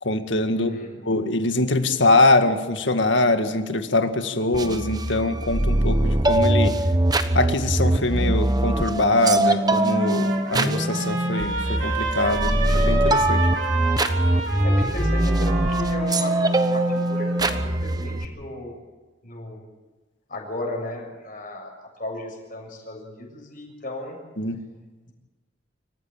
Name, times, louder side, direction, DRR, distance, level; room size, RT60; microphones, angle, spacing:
voice 1, 0.0-0.7 1.0-6.8 7.3-13.5 24.4-24.6, left 2 dB, 75° left, 7 dB, 2.0 m, -23 dB
voice 2, 0.5-1.0 14.6-18.8 19.2-19.6 20.3-21.7 22.0-24.2, left 1 dB, 45° left, 1 dB, 7.0 m, -35 dB
sound 1, 4.5-18.2, right 1 dB, 20° right, 1.1 m, -22 dB
Trumpet, 9.3-17.7, right 3 dB, 75° right, 4.1 m, -32 dB
26.0 x 15.0 x 9.0 m, 1.3 s
head